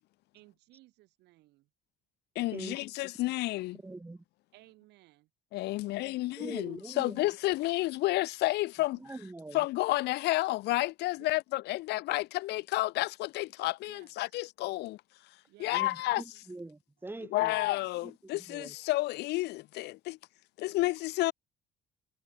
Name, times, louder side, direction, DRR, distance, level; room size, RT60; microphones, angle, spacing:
voice 1, 0.3-1.7 4.5-5.3 11.2-11.4 13.9-14.4 15.5-16.4, right 18 dB, 85° right, 7.5 m, -60 dB
voice 2, 2.3-3.8 5.5-9.0 9.5-15.0 15.6-16.2 17.3-20.2 20.6-21.3, left 18 dB, 80° left, 1.0 m, -31 dB
voice 3, 3.8-4.2 6.4-7.2 9.0-9.6 15.7-17.5 18.0-18.1 18.5-18.8, right 2 dB, 15° right, 4.0 m, -43 dB
cardioid pair, 110°, 17 cm